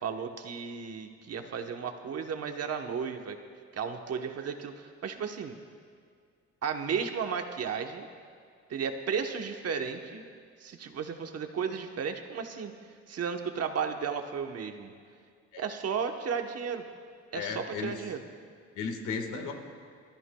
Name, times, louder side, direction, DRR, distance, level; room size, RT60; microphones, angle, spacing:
voice 1, 0.0-3.4 3.7-5.6 6.6-8.1 8.7-10.3 10.6-12.7 13.1-14.9 15.6-16.8 17.3-18.2, right 6 dB, 55° right, 6 dB, 1.0 m, -34 dB
voice 2, 17.3-18.0 18.7-19.5, left 5 dB, 85° left, 4 dB, 1.7 m, -35 dB
25.0 x 13.5 x 2.3 m, 2.2 s
cardioid pair, 90°, 30 cm